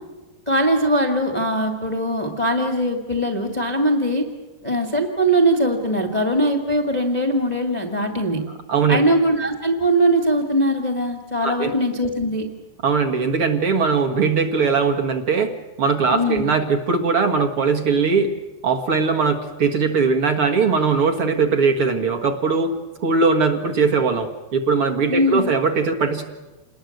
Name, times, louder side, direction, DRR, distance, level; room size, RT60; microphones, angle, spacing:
voice 1, 0.5-4.2 4.6-8.4 8.9-12.5 16.1-16.5 25.1-25.5, right 1 dB, 50° left, 3 dB, 0.5 m, -21 dB
voice 2, 8.7-9.0 11.4-11.7 12.8-15.5 15.8-18.3 18.6-26.2, right 5 dB, 55° right, 4 dB, 1.5 m, -20 dB
28.0 x 20.5 x 7.9 m, 1.1 s
omnidirectional pair, 4.9 m